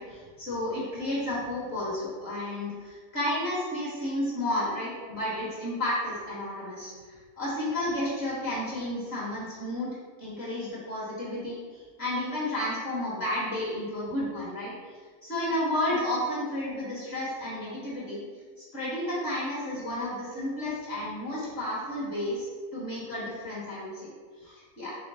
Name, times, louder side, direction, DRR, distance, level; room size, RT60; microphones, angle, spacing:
voice 1, 0.0-18.2 18.7-24.1 24.4-25.0, left 1 dB, 40° left, -8 dB, 1.4 m, -32 dB
5.8 x 2.0 x 3.9 m, 1.5 s
omnidirectional pair, 1.7 m